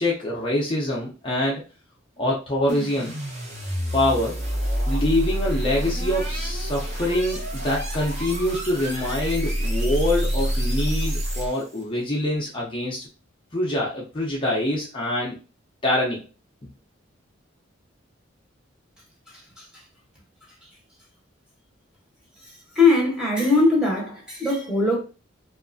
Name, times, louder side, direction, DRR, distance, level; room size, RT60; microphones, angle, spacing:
voice 1, 0.0-1.6 2.2-3.1 3.9-4.4 4.9-13.0 13.5-15.4 15.8-16.2, left 1 dB, 25° left, 0.5 m, -25 dB
sound 1, 2.7-11.8, equal, 40° right, 0.9 m, -27 dB
voice 2, 22.8-25.0, left 3 dB, 5° right, 0.9 m, -20 dB
2.7 x 2.4 x 2.5 m
head